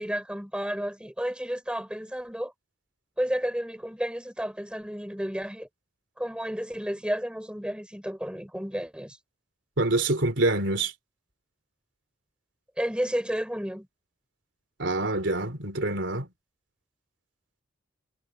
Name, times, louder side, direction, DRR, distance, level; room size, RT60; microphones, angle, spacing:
voice 1, 0.0-2.5 3.2-5.7 6.2-9.2 12.8-13.9, equal, 5° right, 5.6 m, -31 dB
voice 2, 9.8-10.9 14.8-16.3, right 2 dB, 70° right, 3.7 m, -26 dB
head